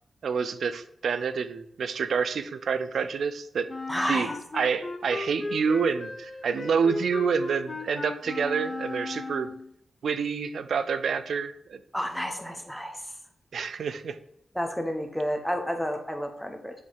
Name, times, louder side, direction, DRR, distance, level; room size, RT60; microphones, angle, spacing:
voice 1, 0.2-3.7 4.1-4.3 4.5-9.5 10.0-11.8 13.5-14.2, right 6 dB, 80° right, 12 dB, 0.5 m, -28 dB
Wind instrument woodwind instrument, 3.7-9.7, left 3 dB, 40° left, 0.7 m, -36 dB
voice 2, 3.9-4.4 11.9-13.1 14.5-16.7, equal, 5° left, 4 dB, 1.1 m, -30 dB
7.7 x 3.2 x 5.6 m, 0.72 s
cardioid pair, 65°, 0 cm